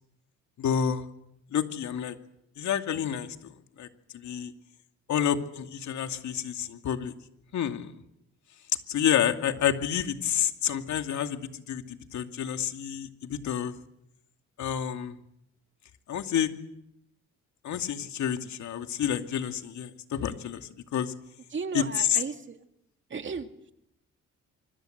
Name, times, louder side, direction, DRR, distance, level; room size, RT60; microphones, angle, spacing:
voice 1, 0.6-1.1 1.5-2.2 2.6-3.4 3.8-3.9 4.1-4.5 5.1-7.1 7.5-7.9 8.9-11.4 11.7-13.7 14.6-15.2 16.1-16.5 17.6-21.1 21.7-22.2, left 9 dB, 70° left, 6 dB, 2.5 m, -29 dB
voice 2, 21.5-22.6 23.1-23.5, right 5 dB, 40° right, 6 dB, 2.5 m, -34 dB
25.5 x 25.5 x 8.0 m, 0.79 s
cardioid pair, 90°, 30 cm